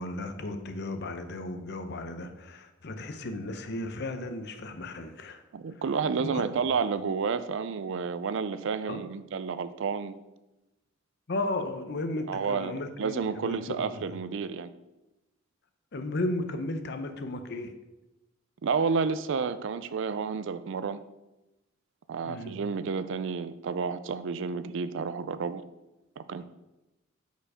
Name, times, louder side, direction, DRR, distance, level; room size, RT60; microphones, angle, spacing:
voice 1, 0.0-5.4 6.2-6.4 8.9-9.0 11.3-13.9 15.9-17.7 22.2-22.5 26.4-26.5, left 2 dB, 55° left, 0.8 m, -34 dB
voice 2, 5.5-10.2 12.3-14.7 18.6-21.0 22.1-25.6 26.2-26.4, right 5 dB, 65° right, 0.4 m, -30 dB
6.5 x 5.1 x 4.9 m
head